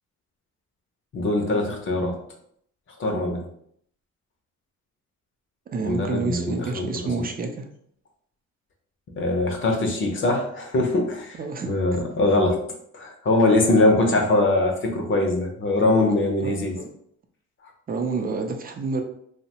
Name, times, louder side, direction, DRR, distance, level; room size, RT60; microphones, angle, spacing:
voice 1, 1.1-2.1 3.0-3.5 5.8-6.9 7.1-7.2 9.2-11.4 11.7-12.6 12.9-16.7, left 2 dB, 40° left, 2 dB, 0.6 m, -22 dB
voice 2, 5.7-7.7 11.3-11.8 16.1-16.9 17.9-19.0, right 4 dB, 30° right, 4 dB, 0.5 m, -29 dB
2.7 x 2.1 x 2.8 m, 0.67 s
cardioid pair, 90°, 30 cm